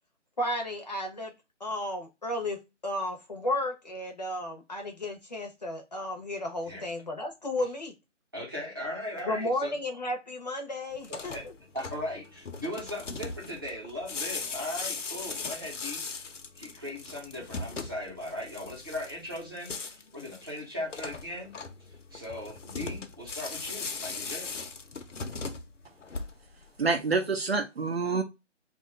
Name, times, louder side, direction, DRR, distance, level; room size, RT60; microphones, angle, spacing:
voice 1, 0.4-1.3 1.6-7.9 9.3-11.3, left 1 dB, 35° left, 3 dB, 0.7 m, -33 dB
voice 2, 8.3-9.8 11.1-11.5 11.7-21.6 21.9-24.7, left 1 dB, 20° right, -4 dB, 0.9 m, -38 dB
sound 1, 11.0-26.6, left 4 dB, 75° left, 0.8 m, -39 dB
voice 3, 26.8-28.2, right 4 dB, 55° right, 5 dB, 0.6 m, -27 dB
2.8 x 2.4 x 4.1 m, 0.23 s
hypercardioid pair, 175°, 37 cm